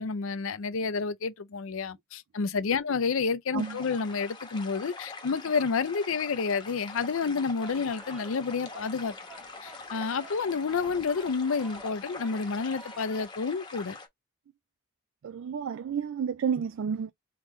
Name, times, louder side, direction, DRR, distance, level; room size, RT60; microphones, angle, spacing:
voice 1, 0.0-9.1 9.6-14.0, left 5 dB, 70° left, 0.5 m, -30 dB
sound 1, 3.6-14.1, left 3 dB, 20° left, 0.9 m, -44 dB
sound 2, 7.6-13.2, right 2 dB, 5° right, 0.7 m, -50 dB
voice 2, 15.2-17.1, right 7 dB, 65° right, 0.3 m, -31 dB
3.8 x 3.6 x 3.0 m
head